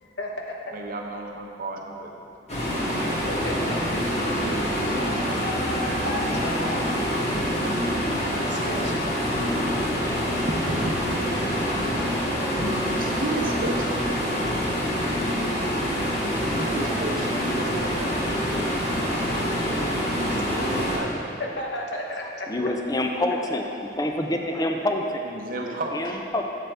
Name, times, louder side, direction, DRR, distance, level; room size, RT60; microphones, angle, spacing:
voice 1, 0.0-0.5 3.0-3.8 5.0-6.8 8.4-9.0 21.4-22.5, left 1 dB, 80° left, 0 dB, 1.0 m, -33 dB
voice 2, 0.7-2.1 10.5-11.2 12.5-14.0 16.5-18.2 20.0-21.3 25.2-26.2, right 2 dB, 50° right, 1 dB, 0.7 m, -33 dB
sound 1, 2.5-21.0, equal, 35° left, 1.6 m, -26 dB
voice 3, 22.5-25.2 25.5-26.4, left 1 dB, 20° left, 3 dB, 0.4 m, -27 dB
8.3 x 7.7 x 3.4 m, 2.7 s
head